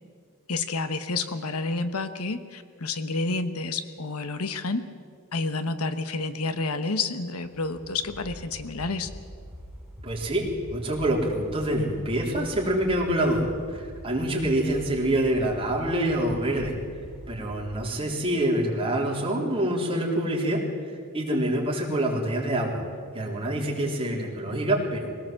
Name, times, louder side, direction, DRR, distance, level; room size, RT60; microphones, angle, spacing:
voice 1, 0.5-4.8 5.3-9.1, left 3 dB, 75° left, 10 dB, 1.2 m, -29 dB
sound 1, 7.4-17.8, equal, ahead, 5.6 m, -44 dB
voice 2, 10.0-16.7 17.3-20.6 21.1-22.8 23.1-25.3, right 1 dB, 25° right, -2 dB, 3.8 m, -26 dB
22.5 x 18.0 x 7.6 m, 2.1 s
head